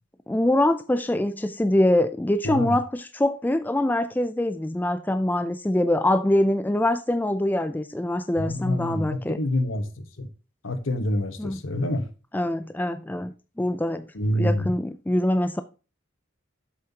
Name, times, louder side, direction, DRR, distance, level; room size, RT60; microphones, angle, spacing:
voice 1, 0.3-9.4 11.4-11.6 12.3-14.1 14.3-15.6, left 1 dB, 10° left, 0.3 m, -24 dB
voice 2, 2.4-2.8 8.4-10.3 10.6-12.1 14.1-14.7, left 1 dB, 75° left, 1.1 m, -27 dB
7.7 x 7.4 x 2.8 m
head